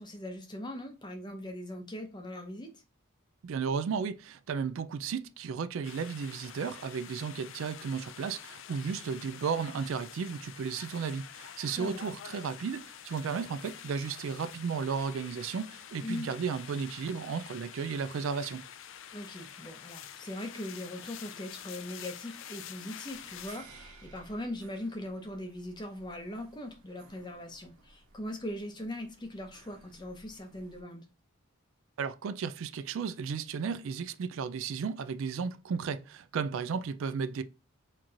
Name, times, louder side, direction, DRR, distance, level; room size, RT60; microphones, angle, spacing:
voice 1, 0.0-2.8 11.8-12.1 16.0-16.3 19.1-31.1, left 1 dB, 20° left, 0.8 m, -40 dB
voice 2, 3.4-18.6 32.0-37.4, right 6 dB, 65° right, 0.3 m, -34 dB
sound 1, 5.8-23.6, left 9 dB, 60° left, 0.4 m, -47 dB
sound 2, 23.1-30.8, right 3 dB, 85° right, 1.2 m, -57 dB
4.3 x 3.0 x 2.4 m
head